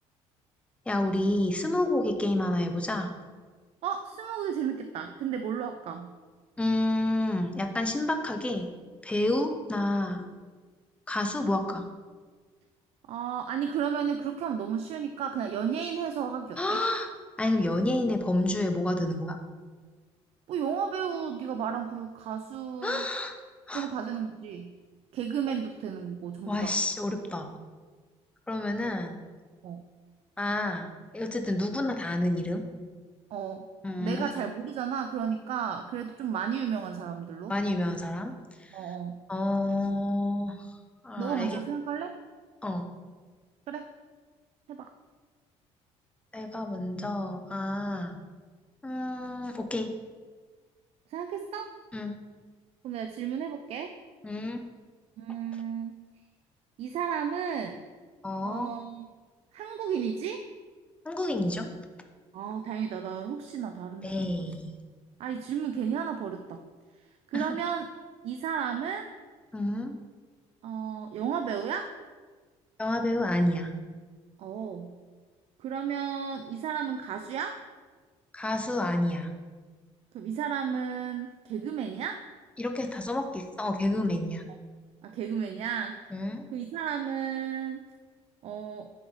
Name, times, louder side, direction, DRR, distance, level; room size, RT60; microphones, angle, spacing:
voice 1, 0.9-3.1 6.6-8.7 9.0-10.3 11.1-11.9 16.6-17.1 17.4-19.4 22.8-23.3 23.7-23.9 26.5-27.5 28.5-29.2 30.4-30.9 31.1-32.6 33.8-34.3 37.5-38.8 39.3-40.7 41.0-41.6 42.6-43.0 46.3-48.2 48.8-49.9 51.9-52.1 54.2-54.6 58.2-58.7 61.0-61.7 64.0-64.7 67.3-67.6 69.5-69.9 72.8-73.7 78.3-79.3 82.6-84.4 86.1-86.5, left 1 dB, 10° left, 5 dB, 0.6 m, -29 dB
voice 2, 3.8-6.1 13.1-16.8 20.5-23.1 23.7-24.7 25.1-26.7 29.6-29.9 33.3-33.7 34.0-37.5 38.7-39.2 41.2-42.2 43.7-43.9 44.7-44.9 51.1-51.7 52.8-54.0 55.2-56.0 56.8-57.8 58.4-59.1 59.5-60.4 62.3-64.5 65.2-66.6 67.3-67.9 68.2-69.1 70.6-71.9 74.4-74.9 75.6-77.6 80.1-82.2 85.0-86.0 86.5-87.8 88.4-88.9, right 7 dB, 55° right, 7 dB, 0.4 m, -33 dB
9.9 x 3.8 x 3.2 m, 1.4 s
cardioid pair, 120°, 12 cm